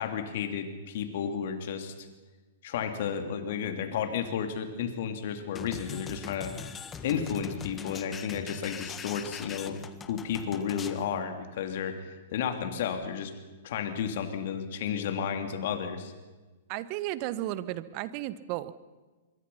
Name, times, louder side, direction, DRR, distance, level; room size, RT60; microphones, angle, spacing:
voice 1, 0.0-1.9 2.6-6.5 7.0-9.8 10.0-13.3 13.6-16.1, left 7 dB, 60° left, 7 dB, 3.3 m, -32 dB
sound 1, 5.6-11.0, left 6 dB, 20° left, 1.6 m, -42 dB
voice 2, 16.7-18.7, right 15 dB, 45° right, 15 dB, 1.3 m, -34 dB
25.5 x 23.5 x 5.8 m, 1.3 s
hypercardioid pair, 115°, 0 cm